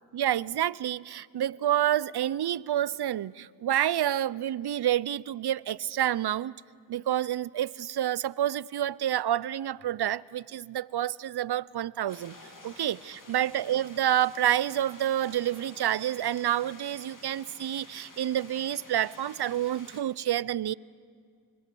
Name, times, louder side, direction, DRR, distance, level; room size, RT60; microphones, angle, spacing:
voice 1, 0.1-6.5 6.9-12.3 12.6-20.7, right 11 dB, 55° right, 22 dB, 0.6 m, -28 dB
sound 1, 12.1-20.0, left 2 dB, 40° left, 3.0 m, -51 dB
26.0 x 21.5 x 6.9 m, 2.2 s
cardioid pair, 55°, 47 cm